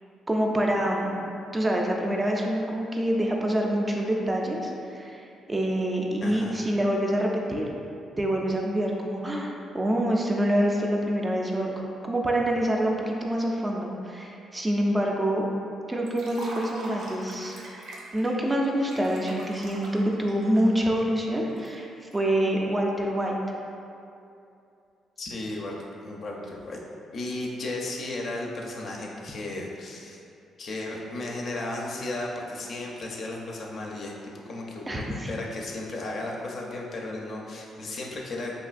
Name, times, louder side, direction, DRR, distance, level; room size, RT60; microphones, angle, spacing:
voice 1, 0.3-1.2 1.5-5.2 5.5-7.7 8.2-11.7 12.0-15.5 15.9-17.5 18.1-21.9 22.1-23.4 34.9-35.3, right 1 dB, 20° right, -1 dB, 0.3 m, -26 dB
voice 2, 6.2-6.6 25.2-25.8 26.0-26.8 27.1-30.2 30.6-34.1 34.5-38.5, left 2 dB, 55° left, -2 dB, 0.4 m, -34 dB
Liquid, 16.1-22.2, right 1 dB, 80° right, 0.4 m, -42 dB
3.1 x 2.5 x 2.4 m, 2.6 s
cardioid pair, 90°, 0 cm